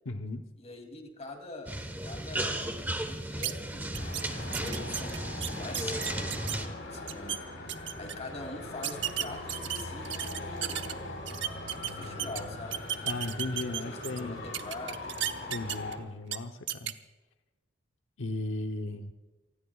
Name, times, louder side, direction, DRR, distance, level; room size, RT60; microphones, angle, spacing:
voice 1, 0.0-0.5 13.1-14.4 15.5-16.9 18.2-19.1, left 2 dB, 90° left, 5 dB, 0.9 m, -36 dB
voice 2, 0.6-5.2 5.5-10.8 11.8-12.8 13.7-15.1, left 2 dB, 35° left, 4 dB, 2.8 m, -44 dB
sound 1, 1.7-6.7, right 1 dB, 10° right, 1.2 m, -35 dB
sound 2, 3.4-3.5 3.9-4.2 4.5-6.6 6.9-7.4 7.7-8.1 8.8-10.9 11.3-12.4 12.7-14.2 14.5-15.9 16.3-16.4 16.7-16.9, right 11 dB, 65° right, 0.9 m, -33 dB
Traffic noise roadway noise, 3.9-16.0, left 2 dB, 70° left, 4.3 m, -41 dB
27.5 x 20.0 x 2.4 m, 1.2 s
head